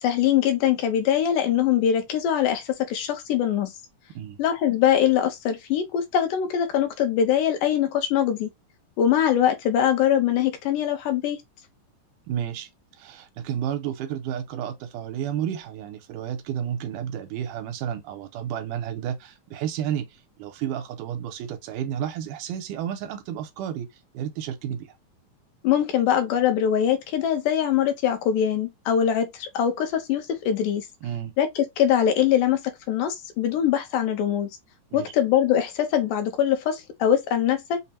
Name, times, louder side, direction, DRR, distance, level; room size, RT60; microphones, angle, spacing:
voice 1, 0.0-3.7 4.4-8.5 9.0-11.4 25.6-30.8 31.4-34.5 34.9-37.8, left 9 dB, 80° left, 2.2 m, -22 dB
voice 2, 12.3-12.7 13.0-20.1 20.4-23.9 24.1-24.9 31.0-31.4 34.9-35.1, right 9 dB, 80° right, 2.1 m, -31 dB
5.6 x 2.1 x 2.8 m
omnidirectional pair, 3.8 m